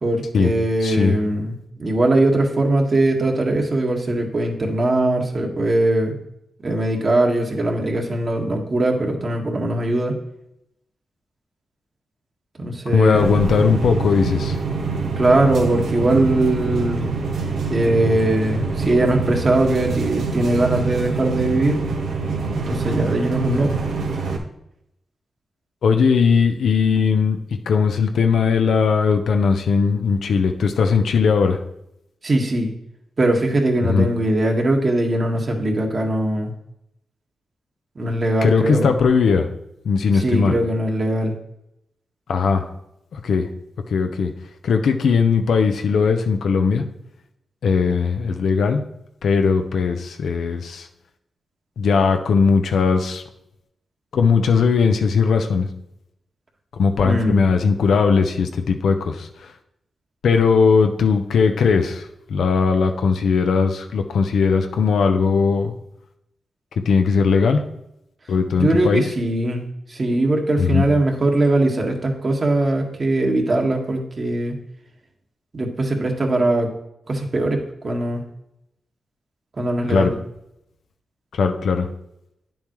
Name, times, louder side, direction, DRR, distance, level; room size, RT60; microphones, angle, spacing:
voice 1, 0.0-6.2 6.6-10.2 12.6-13.4 15.2-17.1 17.7-21.8 22.5-23.7 32.2-32.7 33.2-36.5 37.9-38.9 40.1-41.3 57.0-57.4 68.6-74.6 75.5-76.7 77.1-78.2 79.6-80.1, right 1 dB, 45° right, 1 dB, 1.7 m, -20 dB
voice 2, 0.8-1.2 12.9-14.6 25.8-27.4 27.7-31.6 33.8-34.1 38.4-39.5 39.8-40.6 42.3-42.6 43.1-43.5 43.9-44.3 44.6-46.8 47.6-48.8 49.2-50.9 51.8-53.2 54.1-55.7 56.7-59.5 60.2-65.7 66.9-67.6 68.3-69.0 70.6-70.9 79.9-80.1 81.3-81.9, left 5 dB, 80° left, 6 dB, 0.8 m, -18 dB
sound 1, 13.1-24.4, right 4 dB, 90° right, 1.3 m, -25 dB
9.7 x 7.2 x 3.2 m, 0.81 s
cardioid pair, 65°, 0 cm